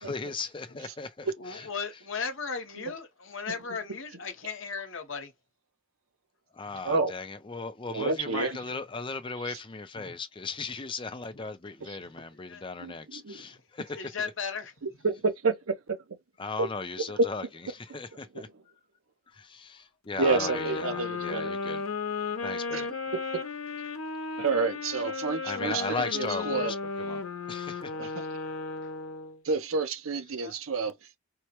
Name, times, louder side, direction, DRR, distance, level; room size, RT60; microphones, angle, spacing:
voice 1, 0.0-1.7 6.5-14.3 16.4-17.4 17.7-18.5 19.3-21.8 22.4-22.9 25.4-28.1 30.4-30.5, left 4 dB, 25° left, 0.5 m, -37 dB
voice 2, 1.4-5.3 6.7-6.8 8.3-8.5 9.9-10.2 11.3-11.4 12.5-12.6 13.4-13.6 13.9-14.7 28.8-28.9 30.4-30.6, left 5 dB, 65° left, 1.0 m, -37 dB
voice 3, 6.8-7.2 7.9-8.6 11.9-12.0 12.8-13.4 15.0-16.0 16.6-16.7 17.2-17.3 18.3-18.4 20.2-21.5 22.7-22.8 24.4-26.7 28.0-28.3 29.4-30.9, right 3 dB, 85° right, 0.7 m, -29 dB
sound 1, 20.2-29.4, left 4 dB, 90° left, 0.8 m, -34 dB
4.5 x 2.1 x 2.9 m
head